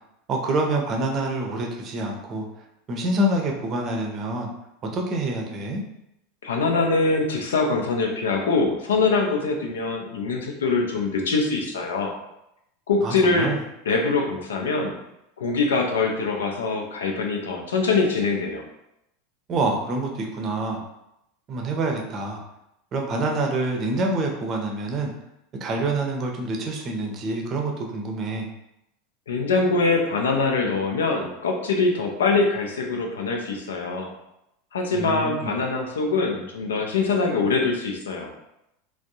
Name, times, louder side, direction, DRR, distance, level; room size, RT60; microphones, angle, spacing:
voice 1, 0.3-2.4 2.9-4.5 4.9-5.8 13.0-13.6 19.5-20.8 21.5-22.4 22.9-25.1 25.6-28.5 34.9-35.6, right 2 dB, 35° right, 1 dB, 0.6 m, -26 dB
voice 2, 6.4-12.2 12.9-13.5 13.9-15.0 15.4-18.6 29.3-34.1 34.7-38.3, left 3 dB, 70° left, 2 dB, 0.5 m, -23 dB
3.3 x 2.1 x 2.7 m, 0.83 s
figure-of-eight pair, 80°, 0 cm